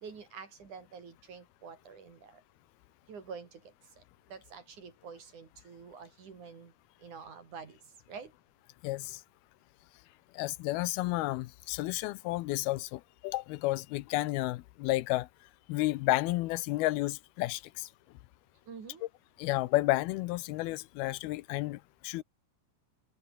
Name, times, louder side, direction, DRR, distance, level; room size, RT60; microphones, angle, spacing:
voice 1, 0.0-2.4 3.1-3.6 4.3-6.7 7.0-7.8 8.1-8.3 18.7-19.0, right 6 dB, 55° right, 4.9 m, -47 dB
voice 2, 8.8-9.2 10.3-15.3 15.7-17.9 19.4-22.2, left 18 dB, 90° left, 2.6 m, -31 dB
omnidirectional pair, 4.4 m